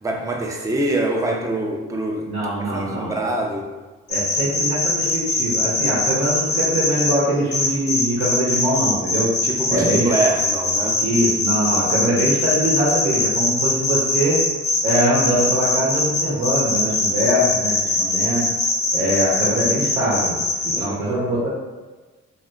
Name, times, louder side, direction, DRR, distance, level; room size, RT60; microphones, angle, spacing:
voice 1, 0.0-2.3 2.6-3.7 9.4-11.1 20.7-21.2, right 2 dB, 10° right, 0 dB, 0.4 m, -24 dB
voice 2, 2.3-3.1 4.1-9.3 9.7-10.1 11.0-14.4 14.8-18.5 18.9-20.4 20.6-21.5, right 1 dB, 85° right, -7 dB, 0.8 m, -22 dB
sound 1, 4.1-7.1 7.5-20.8, left 3 dB, 85° left, 0.9 m, -21 dB
2.6 x 2.5 x 2.2 m, 1.2 s
supercardioid pair, 55°, 29 cm